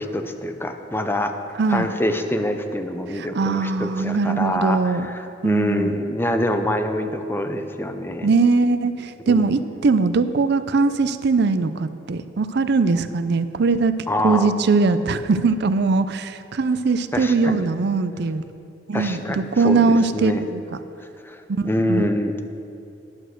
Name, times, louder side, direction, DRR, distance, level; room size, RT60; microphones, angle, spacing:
voice 1, 0.0-1.3 1.7-8.3 9.3-9.4 14.1-14.5 17.1-17.7 18.9-20.4 21.0-22.4, left 1 dB, 10° left, 7 dB, 0.6 m, -25 dB
voice 2, 3.3-5.1 5.4-6.0 8.2-13.9 14.2-18.4 18.9-20.6 21.5-22.1, right 4 dB, 60° right, 12 dB, 0.5 m, -21 dB
11.5 x 6.6 x 6.4 m, 2.7 s
head